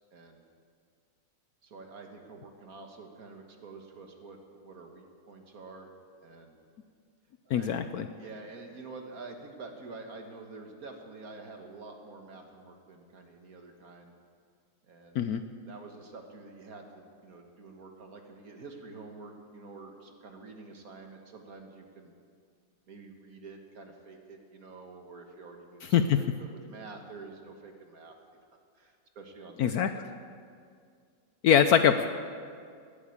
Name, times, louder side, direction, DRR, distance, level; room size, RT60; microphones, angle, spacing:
voice 1, 0.1-0.4 1.6-5.9 6.2-6.6 7.5-7.7 8.2-14.1 14.8-15.2 15.6-22.1 22.9-28.2 28.8-30.0, right 3 dB, 55° right, 3 dB, 1.9 m, -48 dB
voice 2, 7.5-8.1 15.1-15.4 25.9-26.2 29.6-29.9 31.4-32.1, left 8 dB, 65° left, 9 dB, 1.0 m, -23 dB
18.0 x 8.8 x 8.6 m, 2.2 s
omnidirectional pair, 1.9 m